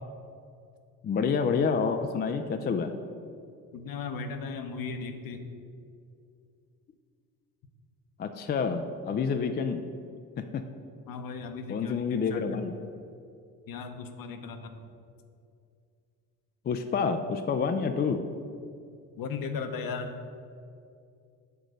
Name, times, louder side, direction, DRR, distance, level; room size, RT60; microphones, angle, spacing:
voice 1, 1.0-3.0 8.2-9.8 10.4-10.6 11.7-12.7 16.6-18.2, left 5 dB, 25° left, 7 dB, 0.4 m, -28 dB
voice 2, 3.7-5.5 11.1-12.8 13.7-14.9 19.2-20.2, left 4 dB, 55° left, 7 dB, 0.8 m, -37 dB
6.7 x 3.9 x 6.3 m, 2.4 s
supercardioid pair, 65°, 43 cm